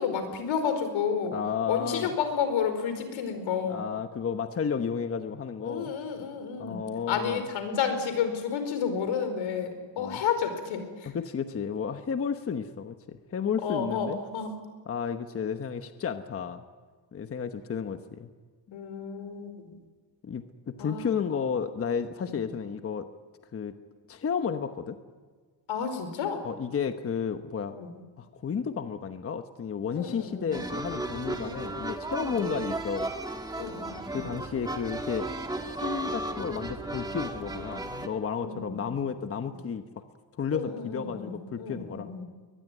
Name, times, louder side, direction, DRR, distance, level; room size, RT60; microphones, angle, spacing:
voice 1, 0.0-1.4 1.7-3.8 5.6-6.8 7.1-11.1 13.6-14.5 18.7-19.8 20.8-21.1 22.2-22.4 25.7-26.4 27.7-27.9 29.9-30.7 32.3-32.5 33.6-34.3 38.4-39.0 39.4-39.6 40.5-42.3, left 7 dB, 85° left, 8 dB, 4.8 m, -31 dB
voice 2, 1.3-2.1 3.7-5.9 6.6-7.5 10.0-10.2 11.1-14.2 14.9-16.6 17.1-18.3 20.2-23.1 23.5-23.7 24.1-25.0 26.4-27.7 28.2-33.1 34.1-35.3 35.6-39.8 40.4-42.1, left 6 dB, 30° left, 8 dB, 1.0 m, -32 dB
sound 1, 30.5-38.1, right 1 dB, 10° right, 1.6 m, -35 dB
23.0 x 20.5 x 9.2 m, 1.5 s
cardioid pair, 170°, 45 cm